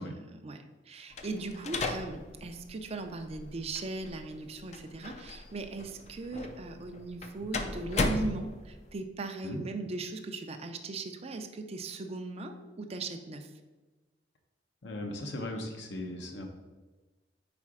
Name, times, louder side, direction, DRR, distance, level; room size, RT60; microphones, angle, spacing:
voice 1, 0.0-13.5, right 2 dB, 35° right, 6 dB, 0.5 m, -38 dB
sound 1, 1.1-8.9, left 2 dB, 40° left, 0.5 m, -37 dB
voice 2, 14.8-16.5, left 1 dB, 70° left, 2 dB, 0.8 m, -38 dB
4.8 x 4.3 x 4.8 m, 1.2 s
head